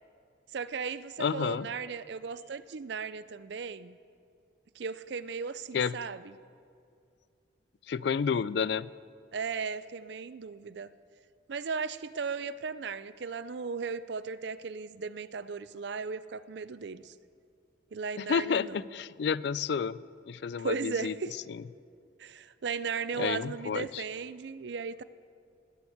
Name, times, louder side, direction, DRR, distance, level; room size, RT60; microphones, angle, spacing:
voice 1, 0.5-4.0 4.8-6.3 9.3-10.9 11.5-17.1 17.9-18.8 20.6-21.3 22.2-25.0, right 5 dB, 65° right, 16 dB, 0.5 m, -36 dB
voice 2, 1.2-1.7 5.7-6.0 7.9-8.9 18.2-20.0 20.3-21.1 21.5-21.6 23.2-24.0, left 6 dB, 65° left, 19 dB, 0.3 m, -30 dB
19.5 x 7.2 x 7.9 m, 2.4 s
head